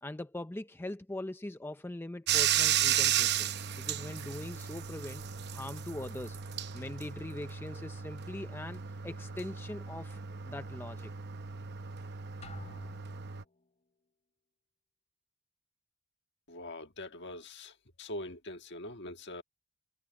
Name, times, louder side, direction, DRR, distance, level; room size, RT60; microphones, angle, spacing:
voice 1, 0.0-3.5 3.8-5.3 5.5-6.4 6.7-10.2 10.4-11.1, left 1 dB, 10° left, 0.4 m, -42 dB
Bathtub (filling or washing), 2.3-13.4, right 10 dB, 50° right, 0.8 m, -34 dB
sound 1, 12.4-13.9, left 2 dB, 30° left, 2.9 m, -51 dB
voice 2, 16.5-17.7 18.0-19.4, left 1 dB, 55° left, 1.6 m, -43 dB
head